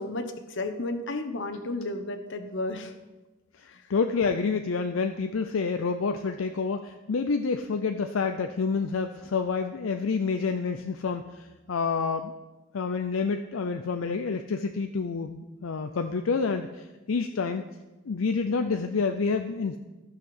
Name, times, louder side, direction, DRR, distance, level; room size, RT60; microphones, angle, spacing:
voice 1, 0.0-2.9 3.7-3.8, left 2 dB, 65° left, 7 dB, 1.0 m, -33 dB
voice 2, 3.9-12.3 12.7-17.6 18.1-19.8, left 4 dB, 80° left, 6 dB, 0.5 m, -28 dB
14.0 x 5.8 x 6.2 m, 1.1 s
head